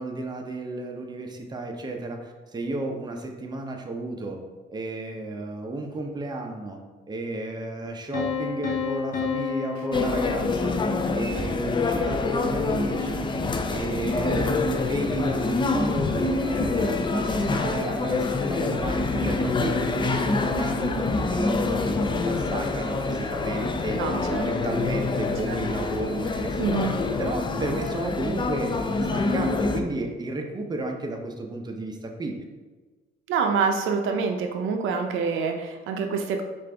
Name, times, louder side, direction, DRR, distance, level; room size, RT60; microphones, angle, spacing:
voice 1, 0.0-4.4 4.7-6.8 7.1-10.8 11.1-13.3 13.7-24.0 24.3-26.8 27.2-28.8 29.1-32.4, right 2 dB, 20° right, 2 dB, 0.6 m, -33 dB
Piano, 8.1-11.0, left 7 dB, 45° left, 0.9 m, -31 dB
sound 1, 9.9-29.8, left 3 dB, 25° left, 0.4 m, -26 dB
voice 2, 23.9-24.4 25.5-25.6 26.6-26.9 33.3-36.4, right 5 dB, 85° right, 4 dB, 0.5 m, -26 dB
5.0 x 2.5 x 3.4 m, 1.3 s
cardioid pair, 90°, 20 cm